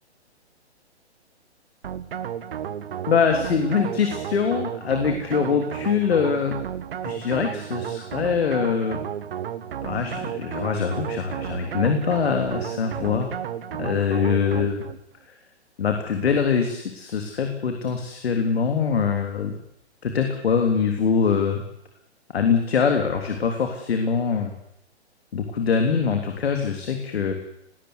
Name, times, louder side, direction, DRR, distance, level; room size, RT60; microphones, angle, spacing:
sound 1, 1.8-15.0, right 9 dB, 55° right, 1.7 m, -33 dB
voice 1, 3.1-6.6 7.0-9.0 9.8-13.3 13.8-14.8 15.8-19.5 20.0-21.6 22.3-24.5 25.3-27.3, left 6 dB, 65° left, 4 dB, 3.5 m, -23 dB
20.0 x 18.5 x 9.9 m, 0.78 s
figure-of-eight pair, 130°, 34 cm